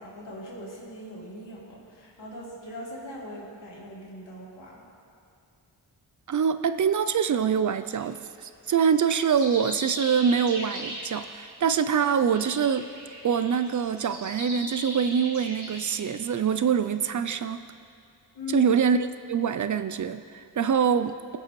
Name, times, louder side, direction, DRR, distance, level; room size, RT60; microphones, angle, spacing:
voice 1, 0.0-4.8 18.3-18.7, left 2 dB, 80° left, -6 dB, 3.0 m, -40 dB
voice 2, 6.3-12.9 13.2-17.6 18.5-19.0 19.3-21.4, right 7 dB, 45° right, 11 dB, 0.4 m, -24 dB
sound 1, 8.0-8.1 8.8-11.3 11.7-16.0, right 1 dB, 70° right, 2.9 m, -39 dB
20.5 x 6.8 x 3.1 m, 2.4 s
cardioid pair, 70°, 42 cm